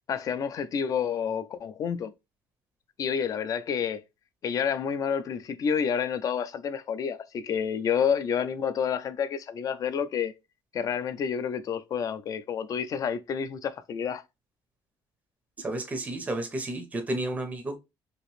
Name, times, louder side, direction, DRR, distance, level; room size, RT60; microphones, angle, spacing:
voice 1, 0.1-2.1 3.0-4.0 4.4-10.3 10.7-14.2, left 7 dB, 40° left, 0.4 m, -29 dB
voice 2, 15.6-17.8, right 1 dB, 15° right, 0.6 m, -32 dB
2.9 x 2.5 x 3.1 m
cardioid pair, 150°, 10 cm